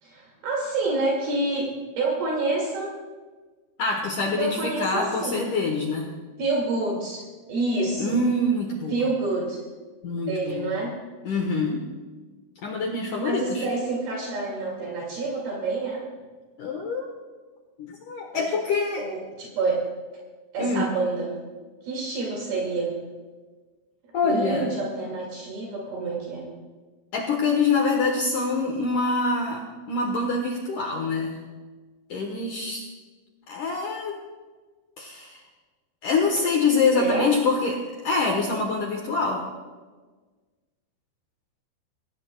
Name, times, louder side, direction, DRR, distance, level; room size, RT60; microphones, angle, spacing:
voice 1, 0.0-1.7 2.0-2.9 4.4-5.4 6.4-7.2 7.5-8.2 8.9-9.6 10.3-11.0 13.2-16.0 19.0-19.8 20.5-21.3 21.8-22.9 24.2-26.5 36.9-37.3, right 3 dB, 60° right, -3 dB, 4.1 m, -27 dB
voice 2, 3.8-6.1 8.0-9.0 10.0-10.7 11.2-11.8 12.6-13.7 16.6-17.2 17.8-19.1 20.6-20.9 24.1-24.7 27.1-31.4 32.1-32.8 33.5-34.1 35.0-35.4 36.0-39.5, left 3 dB, 65° left, 1 dB, 2.2 m, -25 dB
24.5 x 17.0 x 2.3 m, 1.4 s
omnidirectional pair, 5.1 m